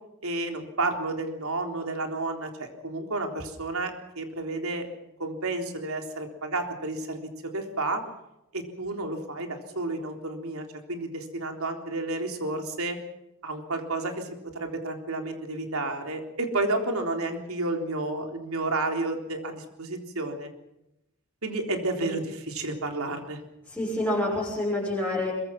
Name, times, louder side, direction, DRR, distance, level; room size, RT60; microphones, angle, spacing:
voice 1, 0.2-4.9 5.2-8.0 8.5-13.0 13.4-14.3 14.6-20.5 21.4-23.4, right 2 dB, 80° right, 4 dB, 3.7 m, -31 dB
voice 2, 23.7-25.3, left 1 dB, 10° left, -6 dB, 6.6 m, -28 dB
23.0 x 22.5 x 6.0 m, 0.86 s
head